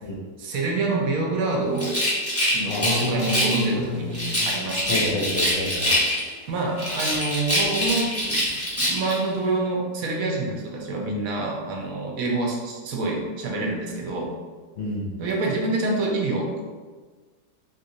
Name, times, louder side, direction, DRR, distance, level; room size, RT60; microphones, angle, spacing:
voice 1, 0.4-2.0 2.5-5.2 6.5-14.3 15.2-16.6, right 2 dB, 70° right, 0 dB, 0.9 m, -27 dB
Rattle, 1.7-3.7 4.1-6.4 6.8-9.2, equal, 15° left, 0.6 m, -25 dB
voice 2, 2.7-4.5 4.9-6.0 14.8-15.1, left 2 dB, 60° left, -5 dB, 0.8 m, -29 dB
3.7 x 2.7 x 2.7 m, 1.4 s
omnidirectional pair, 1.7 m